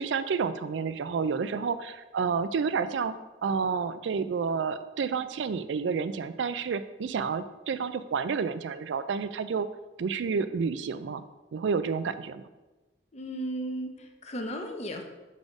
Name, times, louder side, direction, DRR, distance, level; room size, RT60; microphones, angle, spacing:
voice 1, 0.0-3.2 3.4-9.7 10.0-11.2 11.5-12.4, right 5 dB, 80° right, 13 dB, 0.4 m, -30 dB
voice 2, 13.1-15.0, right 1 dB, 40° left, 4 dB, 0.8 m, -35 dB
6.5 x 4.2 x 4.8 m, 1.1 s
head